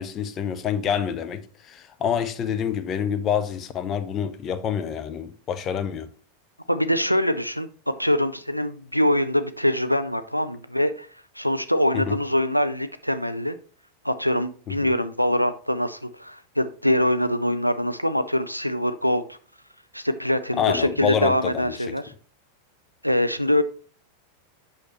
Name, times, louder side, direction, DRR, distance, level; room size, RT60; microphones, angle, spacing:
voice 1, 0.0-6.1 11.9-12.2 14.7-14.9 20.6-21.9, left 8 dB, 30° left, 0.8 m, -27 dB
voice 2, 6.7-7.7 8.0-11.1 11.4-13.6 14.0-19.4 19.9-22.1 23.0-23.6, left 1 dB, 90° left, 0.4 m, -23 dB
8.3 x 6.5 x 3.0 m
figure-of-eight pair, 90°, 0 cm